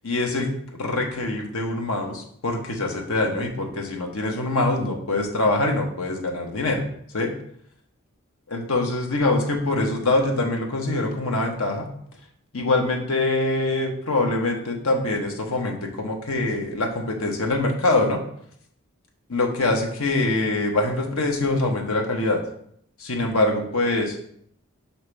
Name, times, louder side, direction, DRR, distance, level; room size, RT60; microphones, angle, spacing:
voice 1, 0.0-0.5 0.8-6.8 7.1-7.3 8.5-11.9 12.5-18.2 19.3-22.4 23.0-24.2, left 2 dB, 80° left, 1 dB, 1.2 m, -24 dB
5.9 x 5.6 x 3.3 m, 0.67 s
head